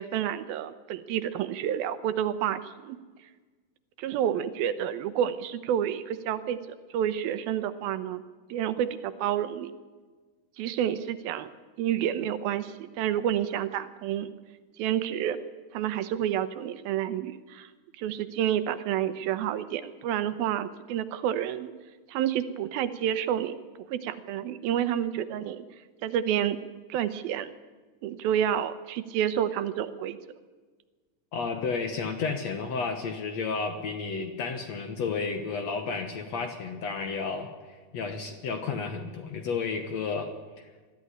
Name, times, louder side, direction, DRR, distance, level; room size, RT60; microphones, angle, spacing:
voice 1, 0.0-3.0 4.0-6.6 6.9-8.2 8.5-9.7 10.6-11.5 11.8-14.3 14.8-15.4 15.7-17.7 18.0-21.7 22.1-23.5 23.9-25.6 26.0-26.6 26.9-27.5 28.0-30.2, right 10 dB, 80° right, 12 dB, 2.7 m, -29 dB
voice 2, 31.3-40.7, left 4 dB, 60° left, 7 dB, 2.0 m, -32 dB
21.5 x 13.5 x 10.0 m, 1.4 s
omnidirectional pair, 4.3 m